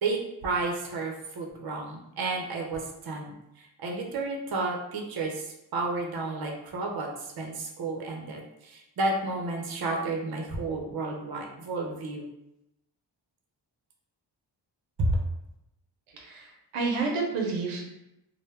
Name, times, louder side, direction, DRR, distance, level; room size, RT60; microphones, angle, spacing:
voice 1, 0.0-12.2 15.0-15.2, right 2 dB, 50° right, 0 dB, 0.7 m, -31 dB
voice 2, 16.1-17.9, right 4 dB, 85° right, 0 dB, 0.7 m, -30 dB
2.2 x 2.2 x 3.2 m, 0.87 s
cardioid pair, 50°, 49 cm